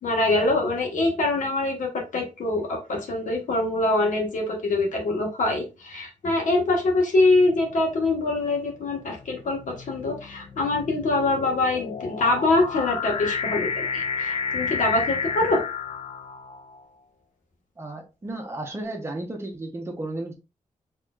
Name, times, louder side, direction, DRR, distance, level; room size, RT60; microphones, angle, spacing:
voice 1, 0.0-15.6, left 2 dB, 75° left, 1.4 m, -24 dB
sound 1, 7.3-7.7 8.6-16.8, left 5 dB, 50° left, 0.4 m, -31 dB
voice 2, 17.8-20.3, right 2 dB, 20° right, 0.9 m, -33 dB
4.1 x 3.1 x 2.4 m
wide cardioid pair, 150°, 13 cm